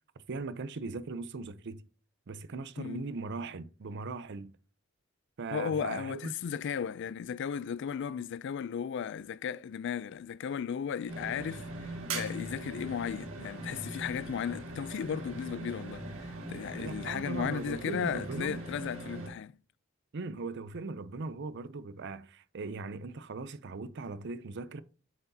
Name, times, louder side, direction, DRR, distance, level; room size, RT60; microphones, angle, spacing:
voice 1, 0.3-1.8 2.3-4.5 5.4-6.3 16.8-18.6 20.1-24.8, right 3 dB, 55° right, 0.5 m, -39 dB
voice 2, 2.8-3.1 5.5-19.5, left 7 dB, 60° left, 0.3 m, -35 dB
sound 1, 11.1-19.3, right 2 dB, 80° right, 1.9 m, -41 dB
7.9 x 5.9 x 2.8 m
head